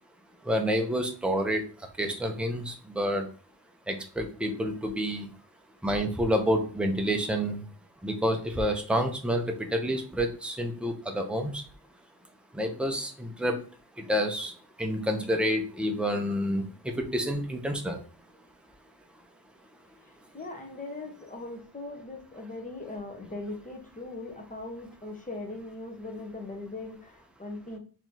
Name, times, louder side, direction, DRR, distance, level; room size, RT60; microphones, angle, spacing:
voice 1, 0.5-1.6 2.0-3.3 3.9-5.3 5.8-7.6 8.0-11.6 12.5-13.6 14.1-14.5 14.8-18.0, equal, 5° right, 4 dB, 0.7 m, -28 dB
voice 2, 20.0-27.8, left 2 dB, 20° left, 2 dB, 1.1 m, -40 dB
4.0 x 3.1 x 2.8 m, 0.41 s
wide cardioid pair, 65°, 39 cm